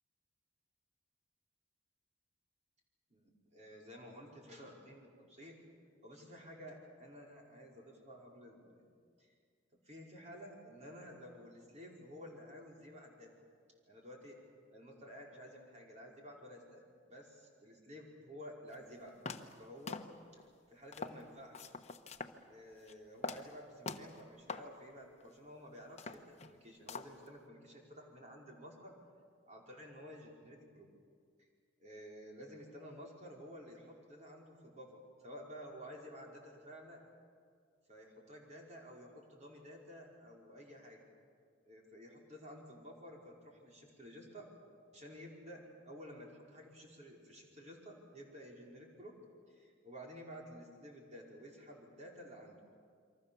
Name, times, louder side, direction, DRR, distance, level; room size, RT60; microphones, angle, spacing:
voice 1, 3.1-5.6 6.0-8.9 9.2-9.3 9.8-13.3 13.8-14.4 14.7-19.2 19.6-20.0 20.3-20.4 20.7-21.7 22.5-28.9 29.5-30.9 31.8-37.0 37.9-41.0 41.6-44.5 44.9-49.1 49.5-52.6, equal, 40° right, -2 dB, 5.1 m, -52 dB
sound 1, 18.7-18.8 19.2-19.6 19.9-20.4 20.9-21.2 21.5-22.4 22.7-22.9 23.2-23.5 23.8-24.2 24.5-24.7 25.2-25.3 25.8-26.6 26.9-27.3, left 4 dB, 35° left, 1.1 m, -44 dB
28.5 x 24.0 x 7.1 m, 2.1 s
head